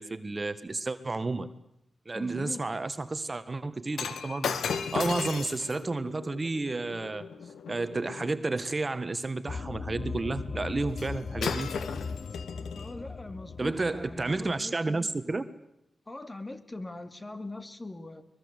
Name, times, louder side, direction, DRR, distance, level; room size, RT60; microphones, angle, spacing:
voice 1, 0.0-1.5 2.0-7.2 7.7-11.7 13.6-15.4, right 3 dB, 35° right, 12 dB, 1.5 m, -31 dB
voice 2, 2.1-2.6 12.7-15.1 16.1-18.3, left 2 dB, 25° left, 9 dB, 2.6 m, -42 dB
Shatter, 3.9-8.3 11.0-11.1 11.4-12.9 13.6-13.8, left 6 dB, 85° left, 1.7 m, -35 dB
sound 1, 9.5-14.6, left 4 dB, 55° left, 0.8 m, -38 dB
22.5 x 22.0 x 8.3 m, 0.83 s
cardioid pair, 55°, 0 cm